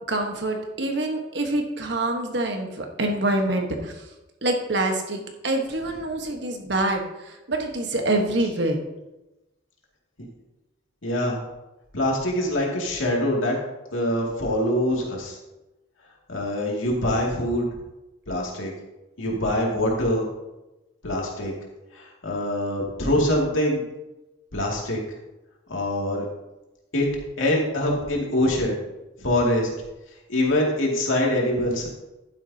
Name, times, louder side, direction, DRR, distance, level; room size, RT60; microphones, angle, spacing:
voice 1, 0.1-4.0 4.4-8.8, right 2 dB, 60° right, 3 dB, 1.3 m, -26 dB
voice 2, 11.0-11.4 11.9-13.6 13.9-15.4 16.3-17.7 18.3-18.7 19.2-20.3 21.0-21.5 21.9-23.8 24.5-25.0 25.7-26.2 26.9-27.1 27.4-28.8 29.2-29.7 30.3-31.9, left 1 dB, 85° left, -2 dB, 2.4 m, -24 dB
11.0 x 9.5 x 2.8 m, 1.0 s
head